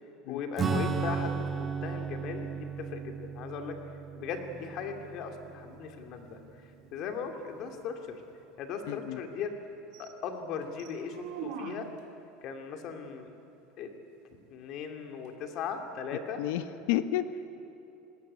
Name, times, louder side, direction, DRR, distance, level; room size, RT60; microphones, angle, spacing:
voice 1, 0.3-3.8 4.2-6.4 6.9-8.2 8.6-9.6 10.0-11.9 12.4-13.3 13.8-13.9 14.5-16.4, left 6 dB, 50° left, 5 dB, 2.5 m, -38 dB
Acoustic guitar / Strum, 0.6-6.5, right 5 dB, 25° right, 1.6 m, -35 dB
sound 1, 4.3-12.2 15.2-15.3, right 10 dB, 75° right, 1.6 m, -48 dB
voice 2, 8.9-9.2 16.4-17.6, left 11 dB, 80° left, 12 dB, 1.1 m, -31 dB
20.0 x 19.0 x 9.7 m, 2.9 s
supercardioid pair, 140°, 0 cm